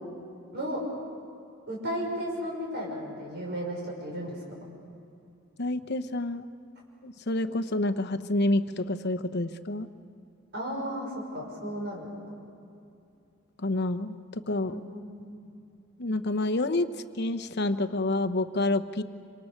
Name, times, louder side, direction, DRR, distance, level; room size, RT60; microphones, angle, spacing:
voice 1, 1.7-4.4 10.5-12.1 14.6-15.3, equal, 55° right, -2 dB, 6.0 m, -34 dB
voice 2, 5.6-6.4 7.0-9.9 13.6-14.8 16.0-16.9 17.1-19.0, left 2 dB, 55° left, 10 dB, 1.0 m, -28 dB
27.0 x 26.0 x 6.6 m, 2.6 s
head